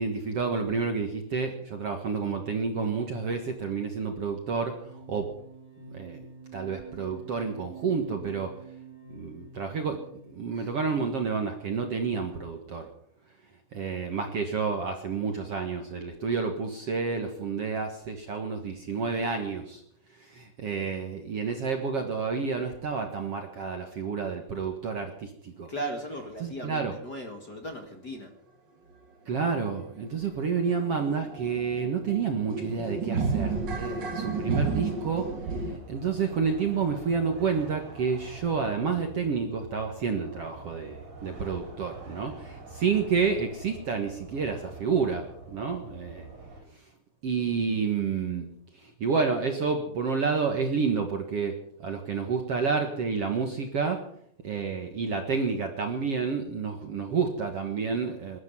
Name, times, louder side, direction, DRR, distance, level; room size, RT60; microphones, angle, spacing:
voice 1, 0.0-4.8 5.1-5.3 5.9-6.2 6.5-8.6 9.1-12.9 13.7-19.8 20.1-25.7 26.1-26.9 29.3-46.3 47.2-54.1 54.4-58.4, right 5 dB, 60° right, 4 dB, 1.6 m, -30 dB
sound 1, 4.7-10.4, right 4 dB, 60° left, 7.8 m, -47 dB
voice 2, 25.7-28.3, right 1 dB, 40° left, 4 dB, 1.4 m, -38 dB
sound 2, 28.9-29.0 29.3-29.5 29.7-35.8, right 4 dB, 80° right, 1.0 m, -32 dB
sound 3, 33.4-46.6, right 3 dB, 45° right, 6.5 m, -44 dB
20.0 x 13.0 x 5.6 m, 0.67 s
omnidirectional pair, 4.9 m